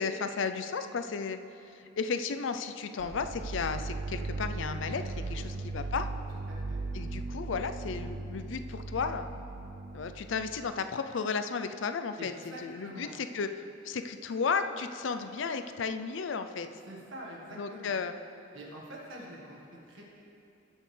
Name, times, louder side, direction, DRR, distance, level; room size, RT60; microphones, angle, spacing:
voice 1, 0.0-1.4 1.7-6.1 6.9-9.3 9.9-12.3 12.6-13.5 13.8-16.7 17.6-18.1, left 5 dB, 70° left, 9 dB, 0.4 m, -34 dB
sound 1, 3.0-10.7, right 3 dB, 50° right, 0.5 m, -38 dB
voice 2, 6.5-6.8 12.2-13.2 16.9-18.0 18.5-20.0, right 1 dB, 85° right, -3 dB, 1.6 m, -46 dB
19.0 x 6.3 x 3.3 m, 2.8 s
head